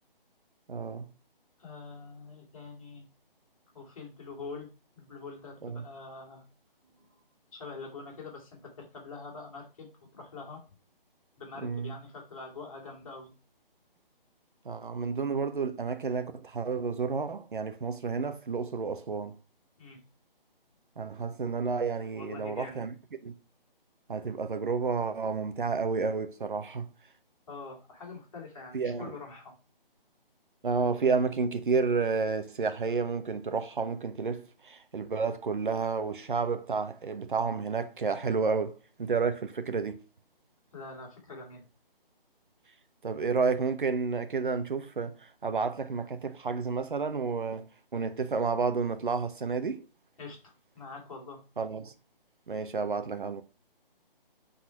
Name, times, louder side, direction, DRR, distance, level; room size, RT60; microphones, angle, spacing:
voice 1, 0.7-1.1 5.6-5.8 11.6-11.9 14.6-19.4 21.0-22.9 23.2-23.3 24.1-26.9 28.7-29.1 30.6-40.0 43.0-49.9 51.6-51.9 52.5-53.4, right 4 dB, 60° right, 1.0 m, -31 dB
voice 2, 1.6-3.0 3.7-4.7 4.9-6.4 6.9-7.1 7.5-10.6 11.4-13.3 19.8-20.0 22.2-22.9 27.5-29.5 40.7-41.6 50.2-51.4, left 4 dB, 35° left, 2.9 m, -44 dB
8.3 x 4.2 x 4.7 m
hypercardioid pair, 170°, 29 cm